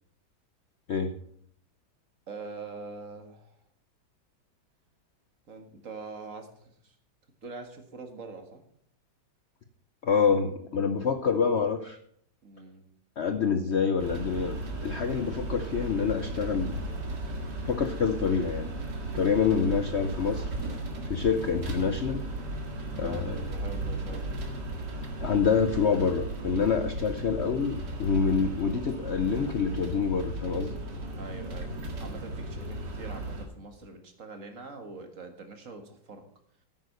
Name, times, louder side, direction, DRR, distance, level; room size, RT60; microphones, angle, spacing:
voice 1, 2.3-3.5 5.5-7.0 7.4-8.6 12.4-12.8 19.3-19.6 22.9-24.3 31.1-31.7 32.0-36.2, right 3 dB, 50° right, 6 dB, 1.9 m, -43 dB
voice 2, 10.0-12.0 13.2-16.7 17.6-18.7 19.1-20.5 21.0-22.2 22.9-23.4 25.2-30.8, left 6 dB, 55° left, 8 dB, 0.7 m, -27 dB
sound 1, 14.0-33.5, right 1 dB, 75° right, 2.5 m, -35 dB
9.9 x 8.6 x 6.6 m, 0.65 s
omnidirectional pair, 1.9 m